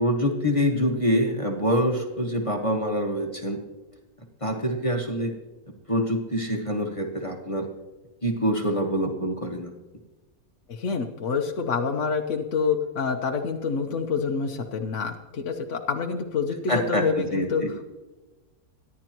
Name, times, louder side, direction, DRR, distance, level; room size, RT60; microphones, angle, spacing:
voice 1, 0.0-3.6 4.4-5.3 5.9-7.7 8.2-9.7 16.7-17.7, equal, 20° left, 1 dB, 1.5 m, -25 dB
voice 2, 10.7-17.8, left 5 dB, 55° left, 2 dB, 1.2 m, -27 dB
24.5 x 11.0 x 3.0 m, 1.1 s
omnidirectional pair, 1.6 m